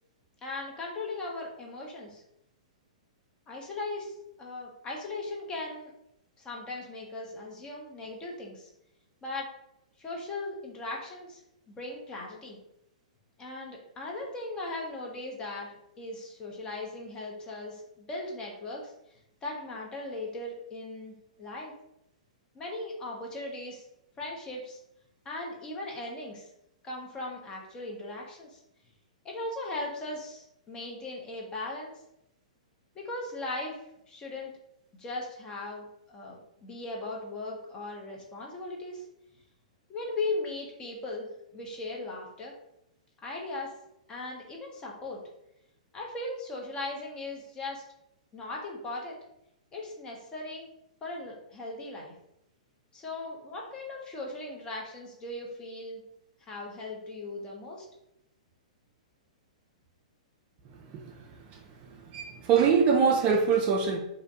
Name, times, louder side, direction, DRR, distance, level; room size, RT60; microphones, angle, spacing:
voice 1, 0.4-2.2 3.5-5.9 6.4-8.7 9.2-9.5 10.0-11.4 11.7-12.6 13.4-15.7 16.0-18.9 19.4-21.7 22.5-23.9 24.2-24.8 25.2-26.5 26.8-28.6 29.2-31.9 32.9-33.8 34.1-34.5 35.0-39.0 39.9-41.3 41.5-42.5 43.2-43.7 44.1-45.2 45.9-47.8 48.3-49.2 49.7-50.6 51.0-52.1 52.9-56.0 56.4-57.9, left 2 dB, 20° left, -2 dB, 0.6 m, -38 dB
voice 2, 62.1-64.0, right 6 dB, 35° right, 2 dB, 0.3 m, -23 dB
2.5 x 2.1 x 2.7 m, 0.82 s
hypercardioid pair, 115°, 4 cm